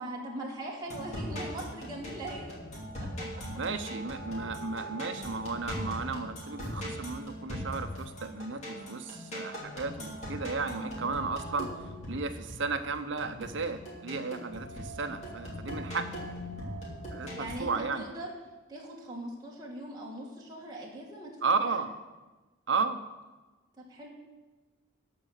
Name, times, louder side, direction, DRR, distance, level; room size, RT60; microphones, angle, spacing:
voice 1, 0.0-2.5 3.0-3.3 17.3-18.3 18.7-21.8 23.8-24.1, right 1 dB, 20° right, -3 dB, 1.7 m, -40 dB
sound 1, 0.8-17.5, equal, 35° left, 3.0 m, -40 dB
voice 2, 3.6-11.7 12.1-16.2 17.1-18.0 21.4-21.9 22.7-23.0, right 4 dB, 60° right, 8 dB, 0.8 m, -34 dB
16.0 x 5.4 x 6.6 m, 1.2 s
head